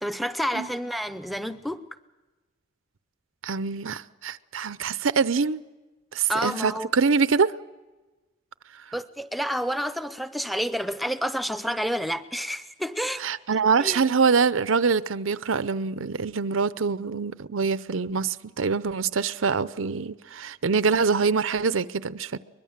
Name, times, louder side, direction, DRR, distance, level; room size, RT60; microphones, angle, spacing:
voice 1, 0.0-1.8 6.3-6.9 8.9-13.4 13.8-14.0, equal, ahead, 0.7 m, -29 dB
voice 2, 3.4-5.6 6.1-7.5 13.2-22.4, right 5 dB, 80° right, 0.7 m, -24 dB
23.5 x 21.0 x 7.4 m
head